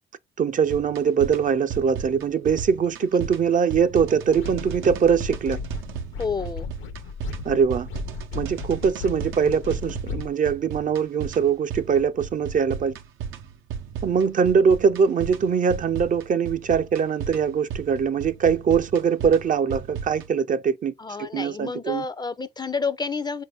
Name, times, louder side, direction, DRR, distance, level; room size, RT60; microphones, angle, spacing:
voice 1, 0.4-5.6 7.4-7.9 8.3-12.9 14.0-20.9 21.2-22.0, right 6 dB, 40° right, 0.4 m, -22 dB
sound 1, 0.7-20.3, right 7 dB, 85° right, 0.6 m, -36 dB
sound 2, 4.3-10.3, left 5 dB, 80° left, 0.7 m, -35 dB
voice 2, 6.2-6.7 21.0-23.4, left 4 dB, 20° left, 0.4 m, -29 dB
4.1 x 2.6 x 3.3 m
cardioid pair, 90°, 20 cm